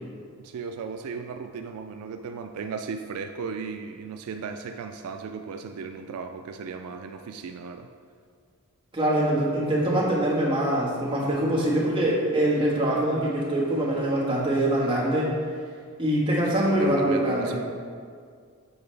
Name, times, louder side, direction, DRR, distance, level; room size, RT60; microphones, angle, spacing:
voice 1, 0.4-7.9 16.5-17.6, right 5 dB, 80° right, 6 dB, 0.3 m, -36 dB
voice 2, 8.9-15.3 16.0-17.6, right 1 dB, 25° right, -6 dB, 1.3 m, -24 dB
7.1 x 4.7 x 3.3 m, 2.1 s
head